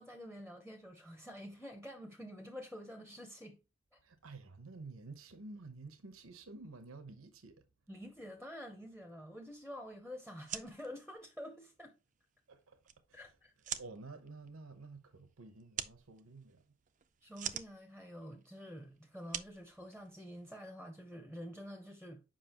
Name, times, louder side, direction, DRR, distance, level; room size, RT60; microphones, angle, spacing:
voice 1, 0.0-3.6 3.9-4.0 7.9-11.9 13.1-13.7 17.2-22.2, equal, 5° left, 0.7 m, -48 dB
voice 2, 4.0-7.6 12.5-12.8 13.1-13.2 13.8-16.6, right 3 dB, 80° right, 0.9 m, -51 dB
sound 1, 10.3-20.5, right 10 dB, 35° right, 0.4 m, -47 dB
7.4 x 5.4 x 2.9 m
head